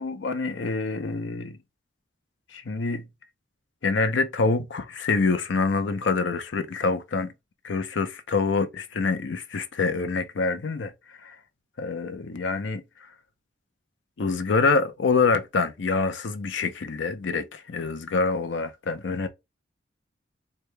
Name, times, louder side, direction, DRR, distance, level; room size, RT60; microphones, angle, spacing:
voice 1, 0.0-1.6 2.5-3.0 3.8-7.3 7.6-10.9 11.2-11.3 11.8-12.8 14.2-19.3, left 4 dB, 80° left, 0.6 m, -26 dB
4.7 x 2.2 x 3.2 m
head